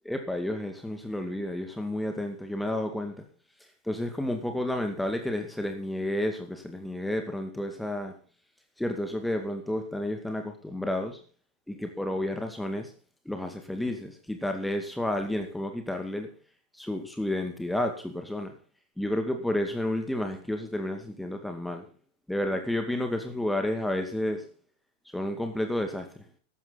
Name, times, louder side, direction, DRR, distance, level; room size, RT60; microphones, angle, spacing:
voice 1, 0.0-3.2 3.8-8.1 8.8-11.2 11.7-12.9 13.3-16.3 16.7-18.5 19.0-21.9 22.3-24.4 25.1-26.2, left 1 dB, 5° left, 5 dB, 2.2 m, -31 dB
15.5 x 12.0 x 4.1 m, 0.38 s
figure-of-eight pair, 90°, 0 cm